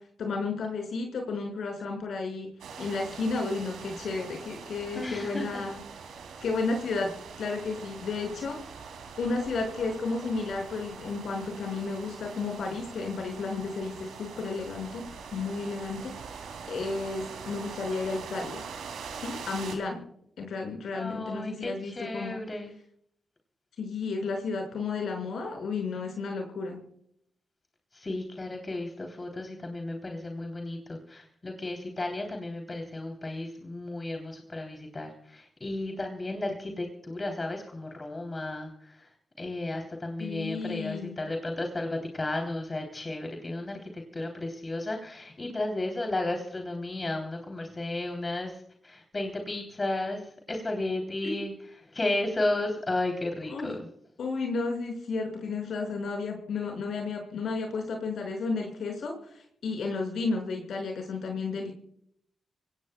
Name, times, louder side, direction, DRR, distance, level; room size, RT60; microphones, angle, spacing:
voice 1, 0.2-2.5 2.8-5.8 6.4-7.1 7.4-8.6 9.2-15.0 15.3-16.1 16.7-18.6 19.1-20.0 20.4-22.4 23.8-26.8 40.2-41.2 51.2-51.3 53.5-53.7 54.2-61.7, left 4 dB, 75° left, 2 dB, 5.7 m, -32 dB
sound 1, 2.6-19.8, right 6 dB, 90° right, 2.6 m, -43 dB
voice 2, 4.9-5.6 20.9-22.7 27.9-39.1 39.4-51.5 51.8-53.8, left 2 dB, 40° left, 2 dB, 3.2 m, -33 dB
25.5 x 17.5 x 2.3 m, 0.67 s
supercardioid pair, 45°, 0 cm